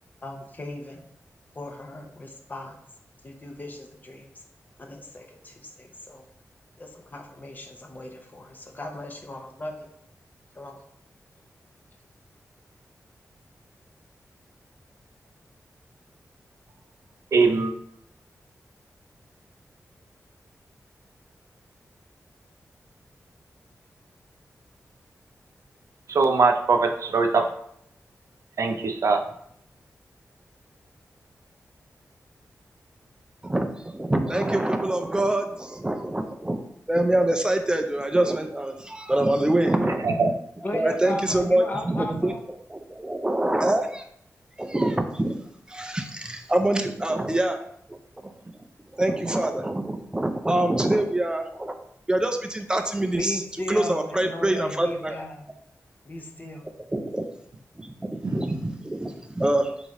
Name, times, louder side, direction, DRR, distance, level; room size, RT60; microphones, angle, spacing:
voice 1, 0.2-1.1 1.6-2.8 3.2-4.3 4.8-6.2 6.8-9.9 10.6-10.8 40.6-42.4 53.2-55.5 56.1-56.6, left 1 dB, 30° left, 3 dB, 0.7 m, -36 dB
voice 2, 17.3-17.7 26.1-27.4 28.6-29.2 40.0-40.3 58.2-58.4, right 4 dB, 70° right, 4 dB, 0.5 m, -21 dB
voice 3, 33.4-36.6 36.9-40.1 40.7-44.1 44.6-45.4 45.7-47.6 47.9-48.0 48.2-48.6 48.9-51.7 52.1-55.2 56.6-57.3 57.8-59.7, right 1 dB, 15° right, 5 dB, 0.4 m, -25 dB
4.0 x 3.3 x 3.6 m, 0.69 s
wide cardioid pair, 125°, 6 cm